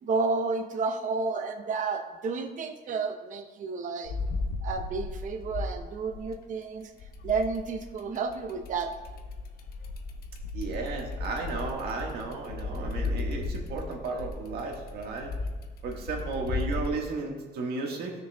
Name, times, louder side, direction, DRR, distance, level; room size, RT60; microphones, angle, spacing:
voice 1, 0.0-4.2 4.6-6.9 7.2-8.9, right 4 dB, 50° right, 5 dB, 0.9 m, -31 dB
sound 1, 4.0-6.5 7.0-16.9, left 3 dB, 60° left, 0.9 m, -35 dB
voice 2, 10.5-15.3 15.8-18.1, right 3 dB, 70° right, 1 dB, 1.7 m, -34 dB
14.0 x 6.5 x 2.3 m, 1.3 s
cardioid pair, 110°, 17 cm